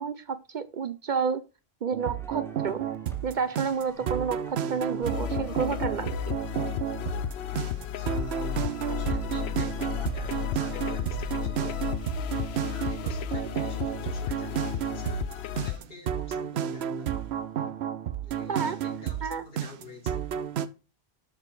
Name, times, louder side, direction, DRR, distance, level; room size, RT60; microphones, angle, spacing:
voice 1, 0.0-1.4 1.8-2.8 3.2-6.4 18.5-18.8 19.2-19.4, right 6 dB, 55° right, 0.7 m, -30 dB
sound 1, 1.9-20.7, right 9 dB, 80° right, 0.9 m, -32 dB
sound 2, 2.0-11.4, equal, 5° left, 1.1 m, -52 dB
sound 3, 5.0-15.8, left 12 dB, 80° left, 0.8 m, -33 dB
voice 2, 7.9-8.6 8.8-11.8 12.5-17.2 18.2-20.3, left 2 dB, 65° left, 2.3 m, -48 dB
7.5 x 4.9 x 4.7 m
omnidirectional pair, 1.0 m